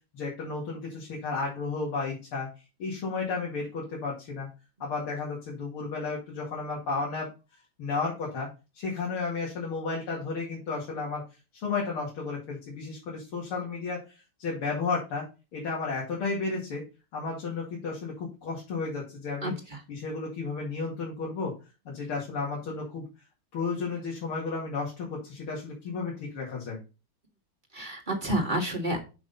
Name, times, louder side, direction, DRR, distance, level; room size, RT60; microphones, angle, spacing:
voice 1, 0.1-2.5 2.8-4.5 4.8-7.3 7.8-11.2 11.6-15.3 15.5-16.8 17.1-19.5 19.9-21.6 21.9-23.0 23.5-26.8, left 4 dB, 80° left, -3 dB, 3.0 m, -33 dB
voice 2, 19.4-19.8 27.7-29.0, right 1 dB, 25° right, 2 dB, 1.7 m, -29 dB
6.3 x 6.0 x 4.1 m, 0.30 s
omnidirectional pair, 2.4 m